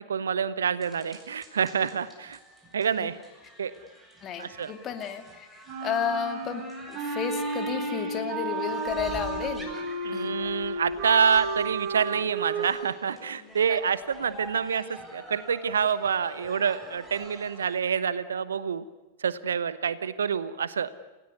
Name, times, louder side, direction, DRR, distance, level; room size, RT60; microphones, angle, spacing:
voice 1, 0.1-2.4 2.7-3.2 3.6-3.7 4.4-4.7 10.0-18.8 19.2-20.9, right 7 dB, 70° right, 16 dB, 1.0 m, -27 dB
sound 1, 0.8-17.8, right 1 dB, ahead, 7.3 m, -45 dB
voice 2, 4.2-6.6 6.9-9.7 10.1-10.3 13.7-13.8, left 7 dB, 30° left, 7 dB, 2.5 m, -33 dB
Wind instrument woodwind instrument, 5.7-12.7, right 2 dB, 40° right, 6.6 m, -32 dB
29.0 x 17.5 x 9.5 m, 1.2 s
figure-of-eight pair, 90°, 0 cm